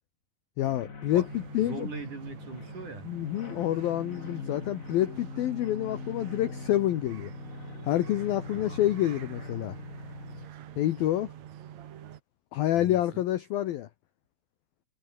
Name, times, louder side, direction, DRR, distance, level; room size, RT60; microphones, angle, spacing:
voice 1, 0.6-1.9 3.1-7.3 7.9-9.8 10.8-11.3 12.5-13.9, left 13 dB, 70° left, 2.4 m, -28 dB
sound 1, 0.6-10.5, left 4 dB, 50° left, 0.9 m, -42 dB
sound 2, 1.1-12.2, right 11 dB, 80° right, 1.6 m, -46 dB
voice 2, 1.7-3.1 8.5-9.3 12.7-13.2, right 3 dB, 40° right, 8.1 m, -42 dB
omnidirectional pair, 5.6 m